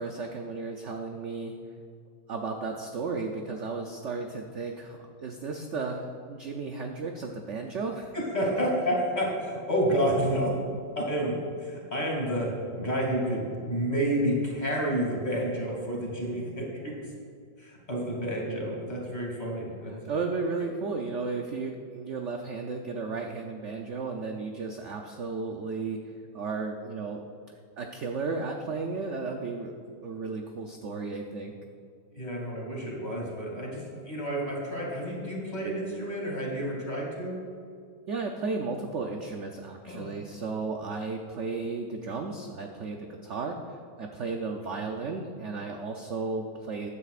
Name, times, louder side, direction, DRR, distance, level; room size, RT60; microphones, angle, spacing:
voice 1, 0.0-1.5 2.3-8.1 20.1-26.0 26.3-27.3 27.8-31.5 38.1-46.9, right 4 dB, 65° right, 3 dB, 0.7 m, -34 dB
voice 2, 8.1-10.5 11.0-16.9 17.6-19.9 32.1-37.4 39.8-40.1, equal, 25° left, -3 dB, 2.6 m, -30 dB
15.0 x 9.8 x 2.5 m, 2.2 s
omnidirectional pair, 2.0 m